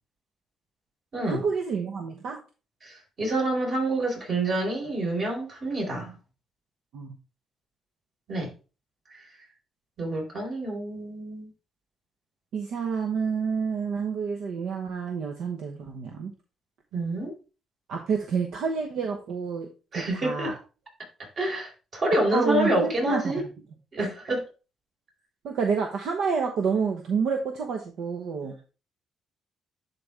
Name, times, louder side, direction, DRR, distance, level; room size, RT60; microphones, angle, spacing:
voice 1, 1.2-2.4 6.9-7.1 12.5-16.3 17.9-19.7 19.9-20.5 22.3-23.5 24.0-24.1 25.4-28.6, right 5 dB, 75° right, 1.0 m, -28 dB
voice 2, 2.8-6.1 8.3-8.5 10.0-11.5 16.9-17.3 19.9-20.5 21.4-23.4 23.9-24.5, right 1 dB, 50° right, 4.6 m, -27 dB
11.0 x 4.3 x 3.4 m
cardioid pair, 90°, 0 cm